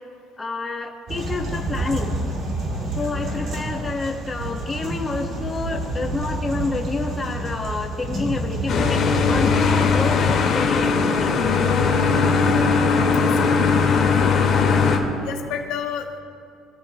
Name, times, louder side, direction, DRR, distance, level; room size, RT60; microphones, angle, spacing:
voice 1, 0.4-2.1 3.0-9.0 9.3-11.4, left 3 dB, 15° left, 1 dB, 1.9 m, -28 dB
sound 1, 1.1-10.4, right 1 dB, 50° right, 4.6 m, -29 dB
sound 2, 8.7-15.0, left 5 dB, 45° left, 2.5 m, -19 dB
voice 2, 12.3-13.1 13.5-13.6 15.2-16.2, left 8 dB, 70° left, 0 dB, 2.0 m, -32 dB
24.5 x 13.5 x 3.3 m, 2.4 s
cardioid pair, 120°, 0 cm